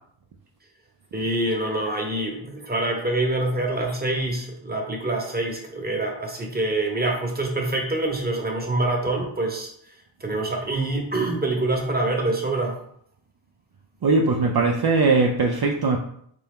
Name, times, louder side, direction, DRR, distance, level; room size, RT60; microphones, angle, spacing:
voice 1, 1.1-9.9 10.2-12.8, right 2 dB, 20° right, 1.0 m, -26 dB
voice 2, 14.0-16.0, right 3 dB, 50° right, 0.6 m, -20 dB
4.2 x 3.4 x 3.6 m
wide cardioid pair, 80°, 49 cm